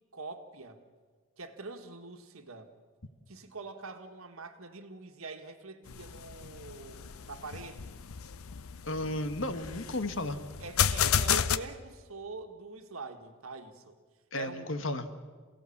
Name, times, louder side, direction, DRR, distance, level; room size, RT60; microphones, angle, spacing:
voice 1, 0.1-0.8 1.4-2.7 3.3-8.1 10.6-14.0 14.3-14.8, right 3 dB, 85° right, 6 dB, 1.8 m, -44 dB
sound 1, 5.9-11.6, left 8 dB, 90° left, 0.7 m, -32 dB
voice 2, 8.8-10.4 14.3-15.1, left 1 dB, 65° left, 9 dB, 1.4 m, -33 dB
27.5 x 17.0 x 7.3 m, 1.5 s
head